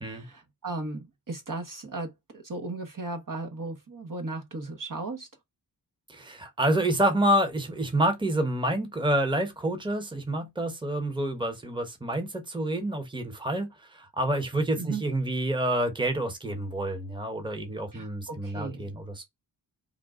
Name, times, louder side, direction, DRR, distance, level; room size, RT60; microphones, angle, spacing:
voice 1, 0.0-5.3 14.8-15.0 17.9-18.9, right 3 dB, 50° right, 1.1 m, -36 dB
voice 2, 6.1-19.2, right 1 dB, 10° right, 1.0 m, -28 dB
3.6 x 2.4 x 3.7 m
cardioid pair, 55°, 42 cm